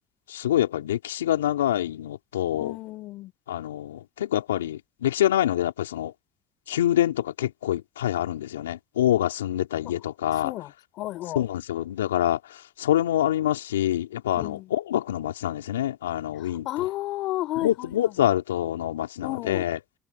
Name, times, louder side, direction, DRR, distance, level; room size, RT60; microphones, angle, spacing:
voice 1, 0.3-2.8 3.5-6.1 6.7-10.5 11.4-12.4 12.8-16.7 17.6-19.8, left 12 dB, 90° left, 3.6 m, -26 dB
voice 2, 2.5-3.3 10.4-10.7 11.0-11.4 14.4-14.7 16.7-18.1 19.2-19.7, left 16 dB, 65° left, 3.7 m, -32 dB
hypercardioid pair, 60°, 0 cm